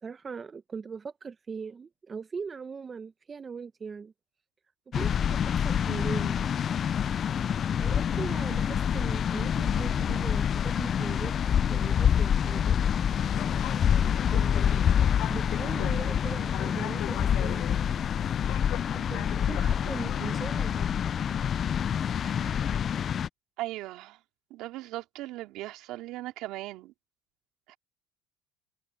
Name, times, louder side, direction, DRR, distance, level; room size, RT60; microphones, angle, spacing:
voice 1, 0.0-4.1 4.9-6.4 7.8-12.8 14.3-14.9 15.3-17.7 18.9-21.1, right 5 dB, 30° right, 1.0 m, -40 dB
sound 1, 4.9-23.3, left 8 dB, 45° left, 0.4 m, -27 dB
sound 2, 13.1-21.0, left 14 dB, 65° left, 0.9 m, -40 dB
voice 2, 22.3-22.8 23.6-24.2 24.5-26.9 27.7-27.8, right 17 dB, 70° right, 2.6 m, -39 dB
supercardioid pair, 85°, 0 cm